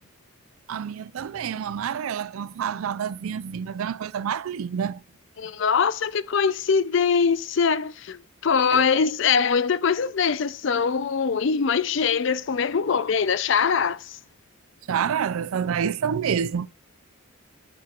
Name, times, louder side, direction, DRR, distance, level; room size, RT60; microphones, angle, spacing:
voice 1, 0.7-5.0 8.7-8.8 14.9-16.7, right 7 dB, 75° right, 0.4 m, -28 dB
voice 2, 5.4-14.2, left 6 dB, 55° left, 0.4 m, -23 dB
11.5 x 4.4 x 2.4 m
head